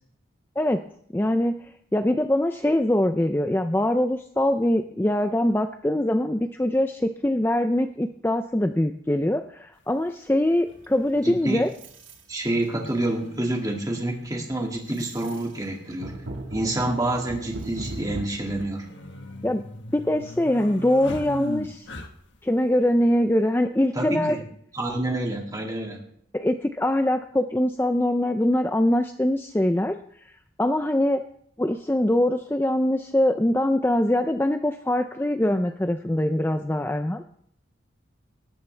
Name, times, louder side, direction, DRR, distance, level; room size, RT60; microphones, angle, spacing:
voice 1, 1.1-1.6 1.9-11.7 19.4-19.6 19.9-21.9 22.4-24.4 26.3-30.0 30.6-31.2 31.6-37.3, left 1 dB, 10° left, 7 dB, 0.4 m, -23 dB
sound 1, 9.9-10.0 11.4-11.5 12.9-13.0 13.2-13.3 15.2-15.3 15.6-15.7 16.4-16.8 18.2-22.4, left 1 dB, 70° left, 1.4 m, -38 dB
sound 2, 10.7-12.3 12.6-13.1 13.6-13.9 14.2-18.2, right 1 dB, 85° right, 1.8 m, -38 dB
voice 2, 11.2-11.7 12.3-16.1 16.5-18.9 23.9-24.4 24.7-26.0, right 1 dB, 20° right, 1 dB, 2.1 m, -28 dB
19.0 x 12.5 x 3.4 m, 0.67 s
head